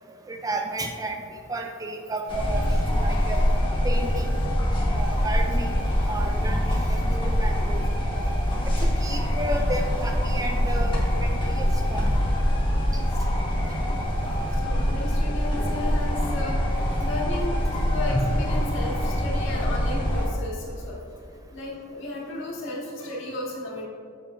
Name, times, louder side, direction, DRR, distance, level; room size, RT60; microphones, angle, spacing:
voice 1, 0.3-1.2 1.5-3.4 3.8-4.3 4.9-5.7 6.0-7.8 8.1-8.7 9.0-12.1, right 1 dB, 15° right, 4 dB, 0.4 m, -32 dB
sound 1, 2.3-20.3, equal, 25° left, 1.3 m, -24 dB
voice 2, 12.8-13.2 14.5-23.9, left 2 dB, 65° left, -4 dB, 1.8 m, -34 dB
8.6 x 7.6 x 2.6 m, 2.5 s
head